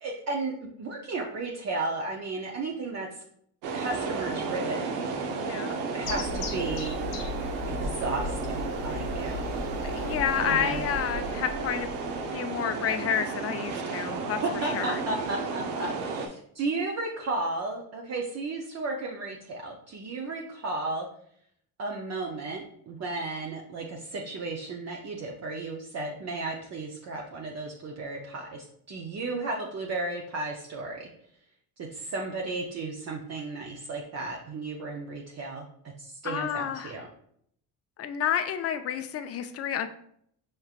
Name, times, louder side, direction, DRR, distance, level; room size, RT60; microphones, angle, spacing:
voice 1, 0.0-3.1 3.7-4.9 5.9-7.0 7.7-9.5 10.4-10.8 14.4-21.1 21.8-31.1 31.8-35.7 36.0-37.1, right 3 dB, 40° right, -1 dB, 0.6 m, -34 dB
sound 1, 3.6-16.3, right 4 dB, 75° right, 0.7 m, -33 dB
voice 2, 5.5-5.8 9.8-11.9 12.3-15.0 29.3-29.5 36.2-36.9 38.0-39.9, left 9 dB, 40° left, 9 dB, 0.4 m, -30 dB
sound 2, 6.0-12.3, left 3 dB, 80° left, 0.9 m, -37 dB
5.7 x 3.2 x 2.4 m, 0.67 s
cardioid pair, 115°, 41 cm